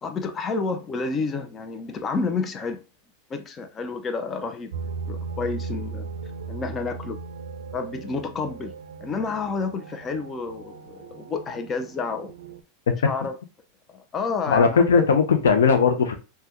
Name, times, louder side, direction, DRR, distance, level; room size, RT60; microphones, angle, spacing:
voice 1, 0.0-2.8 3.3-4.7 5.1-6.1 6.5-7.2 7.7-8.7 9.0-12.3 13.0-13.4 13.9-15.0, left 4 dB, 30° left, 0.5 m, -30 dB
sound 1, 4.7-12.6, right 4 dB, 85° right, 0.4 m, -37 dB
voice 2, 14.5-16.1, left 5 dB, 85° left, 0.5 m, -18 dB
3.4 x 2.2 x 2.9 m
hypercardioid pair, 105°, 0 cm